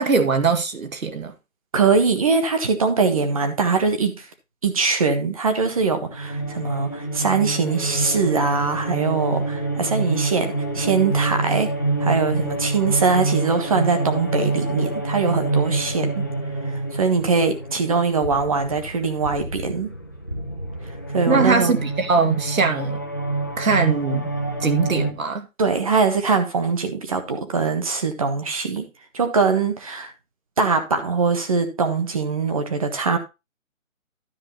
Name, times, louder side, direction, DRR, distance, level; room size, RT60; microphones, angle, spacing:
voice 1, 0.0-1.3 21.3-23.0 23.6-24.3 24.6-25.5, right 4 dB, 80° right, 1.8 m, -21 dB
voice 2, 1.7-4.2 4.6-11.7 12.0-16.3 16.9-19.9 21.1-21.7 25.6-28.9 29.1-30.1 30.6-33.2, right 4 dB, 25° right, 1.4 m, -22 dB
sound 1, 5.7-25.1, right 2 dB, 15° left, 0.7 m, -27 dB
13.0 x 5.0 x 4.2 m
hypercardioid pair, 170°, 41 cm